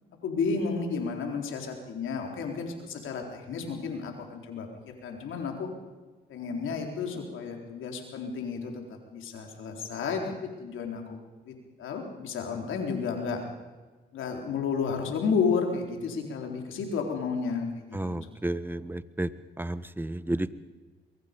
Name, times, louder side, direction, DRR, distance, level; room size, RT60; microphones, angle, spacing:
voice 1, 0.2-4.7 5.0-5.7 6.3-10.3 10.6-11.2 11.4-11.5 11.8-13.4 14.1-18.3, left 5 dB, 75° left, 3 dB, 4.1 m, -32 dB
voice 2, 17.9-19.3 19.6-20.5, right 1 dB, 10° right, 15 dB, 1.3 m, -32 dB
23.0 x 23.0 x 5.3 m, 1.3 s
supercardioid pair, 45°, 20 cm